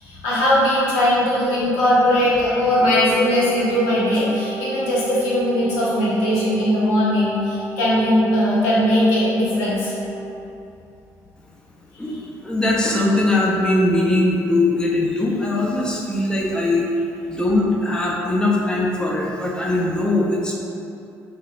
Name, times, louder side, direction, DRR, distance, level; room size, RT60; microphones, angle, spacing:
voice 1, 0.0-9.9, left 1 dB, 90° left, -8 dB, 0.9 m, -19 dB
Wind instrument woodwind instrument, 2.5-10.5, right 3 dB, 70° right, 0.5 m, -34 dB
voice 2, 12.4-16.8 17.3-20.5, left 2 dB, 10° left, -4 dB, 0.5 m, -20 dB
2.7 x 2.5 x 3.1 m, 2.6 s
supercardioid pair, 75°, 7 cm